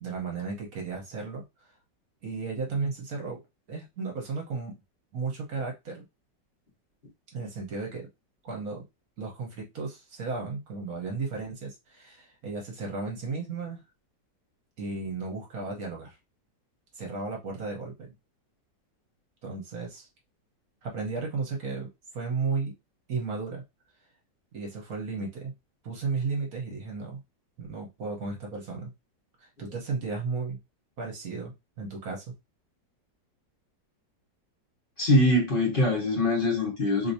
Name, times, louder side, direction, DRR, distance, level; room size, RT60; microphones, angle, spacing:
voice 1, 0.0-1.4 2.2-3.4 3.7-4.7 5.1-6.0 7.3-8.1 8.4-8.9 9.2-13.8 14.8-16.1 17.0-18.1 19.4-20.0 20.8-21.9 22.1-22.7 23.1-23.6 24.5-25.5 25.8-27.2 27.6-28.9 29.6-30.6 31.0-32.2, right 4 dB, 55° right, 1.5 m, -34 dB
voice 2, 35.0-37.1, left 1 dB, 30° left, 1.4 m, -23 dB
3.4 x 2.9 x 2.7 m
omnidirectional pair, 1.9 m